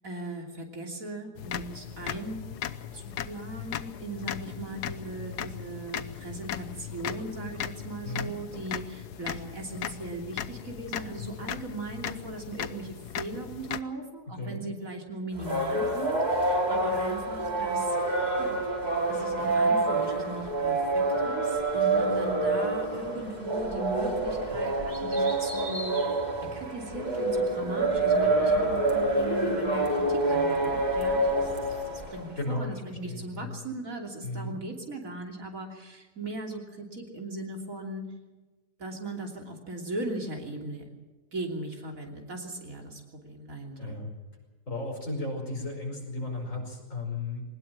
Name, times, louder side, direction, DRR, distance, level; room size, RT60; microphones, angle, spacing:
voice 1, 0.0-2.5 2.9-18.0 18.4-26.1 26.4-38.1 38.8-40.9 41.3-44.0, right 2 dB, 55° right, 2 dB, 3.5 m, -38 dB
sound 1, 1.4-13.8, left 10 dB, 80° left, 1.4 m, -38 dB
voice 2, 8.0-8.4 14.3-14.6 32.4-33.5 34.2-34.5 43.8-44.1 44.7-47.4, left 2 dB, 50° left, 1 dB, 5.6 m, -35 dB
sound 2, 15.3-32.4, right 2 dB, 25° right, 3.7 m, -27 dB
21.5 x 19.5 x 7.6 m, 1.3 s
omnidirectional pair, 1.7 m